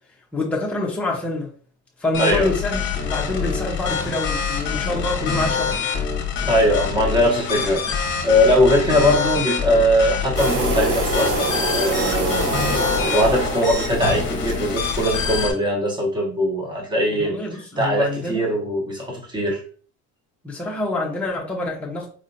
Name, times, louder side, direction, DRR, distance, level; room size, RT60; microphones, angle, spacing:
voice 1, 0.3-1.5 2.0-5.7 17.1-18.4 20.4-22.1, left 2 dB, 5° left, 0.7 m, -26 dB
sound 1, 2.1-15.5, left 6 dB, 40° left, 0.8 m, -25 dB
voice 2, 2.2-2.5 6.5-7.8 8.2-12.5 13.0-17.4 17.8-19.6, equal, 15° right, 1.0 m, -20 dB
sound 2, 10.4-15.4, right 1 dB, 55° right, 1.0 m, -26 dB
4.3 x 2.6 x 2.7 m
cardioid pair, 160°, 29 cm